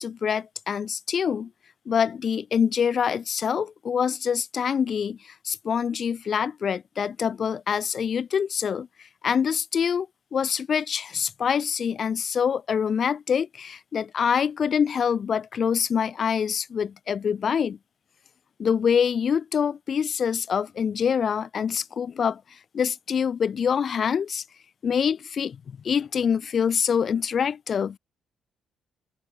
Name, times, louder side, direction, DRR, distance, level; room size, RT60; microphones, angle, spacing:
voice 1, 0.0-1.5 1.9-8.9 9.2-17.8 18.6-22.4 22.7-24.4 24.8-25.6 25.8-28.0, left 7 dB, 35° left, 6.6 m, -25 dB
open air
cardioid pair, 165°, 0 cm